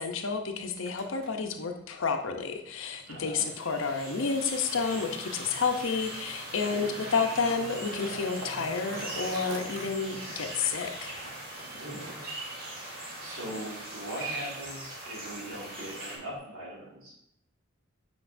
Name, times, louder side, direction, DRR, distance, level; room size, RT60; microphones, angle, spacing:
voice 1, 0.0-11.1, left 5 dB, 65° left, 5 dB, 0.6 m, -30 dB
Skateboard, 0.6-16.4, right 2 dB, 60° right, 0.9 m, -47 dB
voice 2, 3.1-3.5 6.6-6.8 11.7-12.1 13.2-17.1, right 1 dB, 85° right, -4 dB, 2.0 m, -40 dB
sound 1, 3.3-16.2, right 1 dB, 45° right, 1.8 m, -41 dB
7.9 x 5.3 x 2.6 m, 0.75 s
head